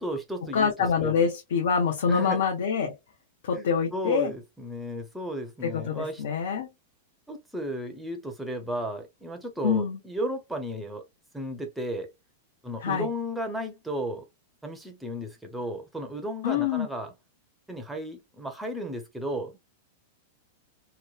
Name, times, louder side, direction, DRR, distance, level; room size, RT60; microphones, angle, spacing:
voice 1, 0.0-0.7 1.0-1.2 2.1-2.4 3.5-3.7 3.9-6.2 7.3-11.0 11.3-12.1 12.6-14.2 14.6-17.1 17.7-19.6, equal, 5° right, 0.5 m, -34 dB
voice 2, 0.5-3.0 3.4-4.3 5.6-6.7 9.6-10.0 12.8-13.1 16.4-16.9, left 6 dB, 75° left, 0.7 m, -25 dB
2.9 x 2.1 x 2.3 m
supercardioid pair, 160°, 0 cm